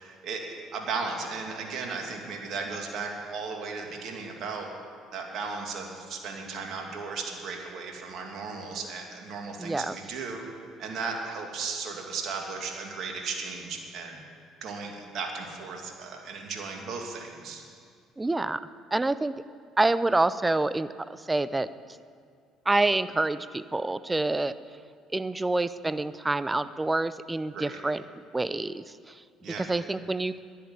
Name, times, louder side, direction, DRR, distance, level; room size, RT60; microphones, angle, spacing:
voice 1, 0.0-4.7 5.1-10.4 10.8-14.2 14.6-17.6 27.5-27.8 29.4-29.7, right 4 dB, 60° right, 2 dB, 2.5 m, -36 dB
voice 2, 9.6-10.0 18.2-18.6 18.9-19.3 19.8-20.9 21.3-21.7 22.7-24.5 25.1-28.0 28.3-28.8 29.6-30.4, right 2 dB, 15° right, 15 dB, 0.6 m, -27 dB
11.0 x 10.0 x 9.3 m, 2.1 s
hypercardioid pair, 60°, 0 cm